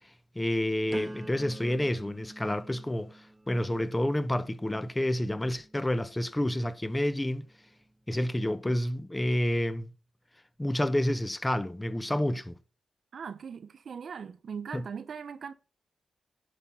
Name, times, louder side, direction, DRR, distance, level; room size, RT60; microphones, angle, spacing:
voice 1, 0.3-3.2 3.5-7.5 8.1-9.9 10.6-12.5 14.7-14.8, left 1 dB, 15° left, 1.4 m, -29 dB
sound 1, 0.9-6.8 7.3-7.7, right 1 dB, 20° right, 2.0 m, -46 dB
voice 2, 13.1-15.5, right 6 dB, 65° right, 1.0 m, -40 dB
11.0 x 5.7 x 5.8 m
supercardioid pair, 50°, 0 cm